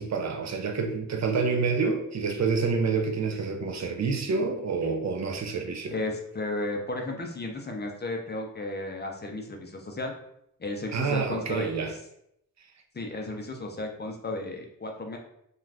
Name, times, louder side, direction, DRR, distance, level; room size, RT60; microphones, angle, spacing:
voice 1, 0.0-5.9 10.9-11.9, right 4 dB, 50° right, 0.4 m, -28 dB
voice 2, 5.9-10.1 10.6-12.0 12.9-15.2, left 2 dB, 30° left, 0.4 m, -34 dB
2.4 x 2.2 x 3.2 m
wide cardioid pair, 105°, 35 cm